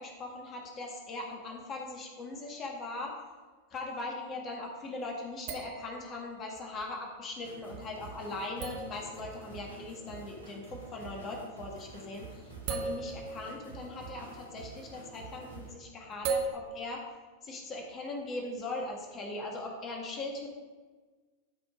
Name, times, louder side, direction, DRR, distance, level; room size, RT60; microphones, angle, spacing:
voice 1, 0.0-3.2 3.7-17.0 17.4-20.5, left 2 dB, 30° left, 0 dB, 1.8 m, -40 dB
sound 1, 2.9-3.0 5.5-6.8 7.6-7.7 8.6-10.5 11.8-12.0 12.2-14.4 16.1-16.4, right 6 dB, 45° right, 1.2 m, -38 dB
sound 2, 7.4-15.7, right 4 dB, 85° right, 2.2 m, -48 dB
12.0 x 5.3 x 5.1 m, 1.4 s
figure-of-eight pair, 90°, 0 cm